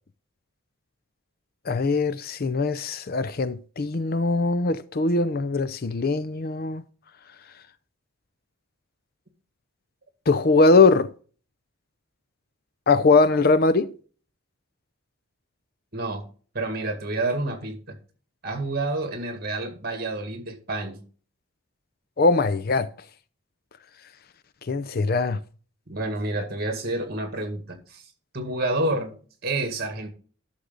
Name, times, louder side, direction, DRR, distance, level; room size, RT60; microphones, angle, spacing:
voice 1, 1.7-6.8 10.3-11.1 12.9-13.9 22.2-22.9 24.7-25.4, left 3 dB, 45° left, 0.5 m, -21 dB
voice 2, 15.9-16.2 16.5-18.0 18.4-21.0 25.9-28.0 28.3-29.1 29.4-30.1, right 2 dB, 45° right, 1.9 m, -29 dB
11.5 x 6.5 x 3.8 m
head